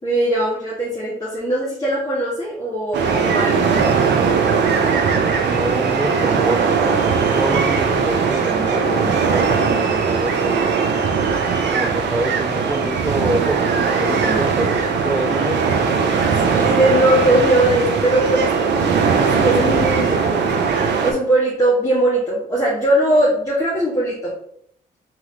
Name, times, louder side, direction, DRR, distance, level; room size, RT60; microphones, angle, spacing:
voice 1, 0.0-4.0 16.0-20.4 21.0-24.3, right 1 dB, 20° left, -6 dB, 1.7 m, -20 dB
sound 1, 2.9-21.1, right 5 dB, 65° right, 0.8 m, -19 dB
voice 2, 5.4-10.8 11.7-15.7, right 1 dB, 10° right, 5 dB, 0.5 m, -26 dB
4.0 x 3.0 x 3.9 m, 0.67 s
supercardioid pair, 50°, 19 cm